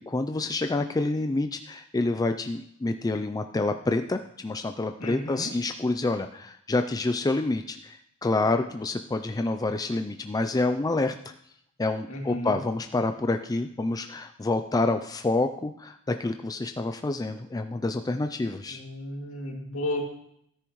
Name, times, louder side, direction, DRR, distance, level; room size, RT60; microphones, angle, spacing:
voice 1, 0.1-11.1 11.8-18.8, left 2 dB, 15° left, 7 dB, 0.4 m, -28 dB
voice 2, 5.0-5.5 12.1-12.6 18.7-20.0, left 1 dB, 70° left, 0 dB, 2.4 m, -33 dB
13.5 x 9.9 x 3.1 m, 0.72 s
head